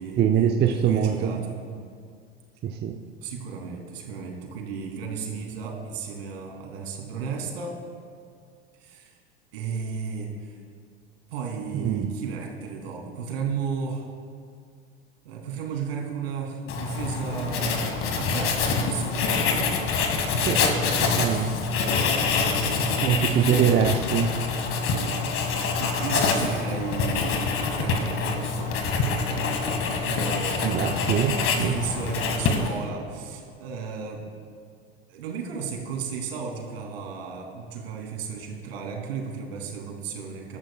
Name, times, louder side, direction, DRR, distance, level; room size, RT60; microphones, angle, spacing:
voice 1, 0.2-1.4 2.6-3.0 11.7-12.1 20.3-20.6 21.2-21.6 23.0-24.4 30.6-31.8, right 8 dB, 30° right, 4 dB, 0.8 m, -23 dB
voice 2, 0.7-1.6 3.2-7.8 8.7-9.2 9.5-10.6 11.3-14.1 15.2-20.1 20.5-21.1 22.6-24.0 25.5-27.4 27.7-28.7 29.2-31.1 31.4-34.3 35.1-40.6, right 5 dB, 65° right, 0 dB, 3.1 m, -34 dB
Writing, 16.7-32.9, left 4 dB, 40° left, 1.9 m, -26 dB
23.0 x 12.0 x 2.4 m, 2.1 s
figure-of-eight pair, 80°, 33 cm